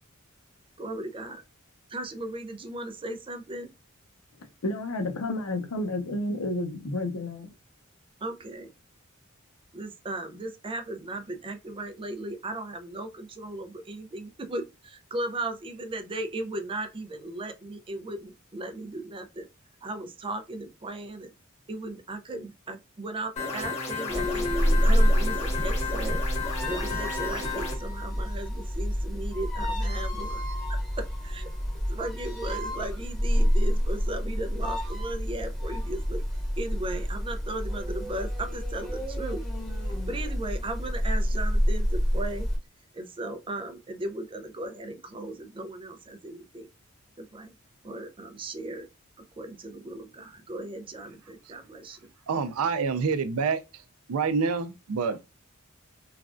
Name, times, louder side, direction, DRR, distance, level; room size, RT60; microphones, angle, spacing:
voice 1, 0.8-1.4 1.9-3.7 8.2-8.7 9.7-19.5 19.8-21.3 21.7-26.2 26.7-30.4 31.2-31.5 31.9-36.2 36.6-39.4 40.1-42.5 42.9-46.7 47.2-47.5 47.8-48.9 49.4-52.1, right 2 dB, 25° right, 0.4 m, -36 dB
voice 2, 4.4-7.5, left 2 dB, 90° left, 0.6 m, -31 dB
sound 1, 23.4-27.7, left 4 dB, 35° left, 1.3 m, -33 dB
sound 2, 24.1-42.6, equal, 5° left, 1.0 m, -28 dB
voice 3, 52.3-53.6 54.1-55.3, right 5 dB, 85° right, 0.4 m, -27 dB
3.2 x 2.3 x 2.4 m
head